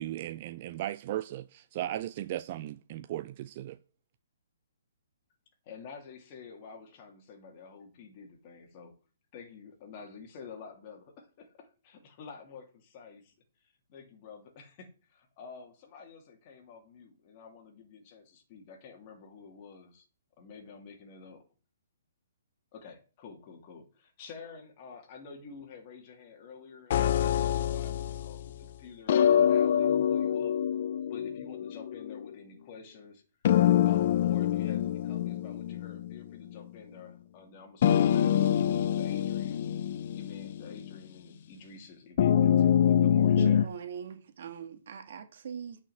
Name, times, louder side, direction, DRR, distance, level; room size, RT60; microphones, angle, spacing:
voice 1, 0.0-3.8, right 13 dB, 35° right, 0.4 m, -36 dB
voice 2, 5.6-8.9 9.3-13.3 13.6-20.0 20.4-21.4 22.7-30.6 31.1-33.2 33.8-39.7 40.1-43.7, left 5 dB, 30° left, 2.8 m, -49 dB
sound 1, 26.9-28.5 29.1-32.3 33.4-36.2 36.6-36.7 37.8-41.0 42.2-43.7, left 9 dB, 45° left, 0.6 m, -25 dB
voice 3, 43.4-45.8, right 7 dB, 55° right, 1.7 m, -41 dB
9.1 x 5.8 x 7.8 m
hypercardioid pair, 160°, 0 cm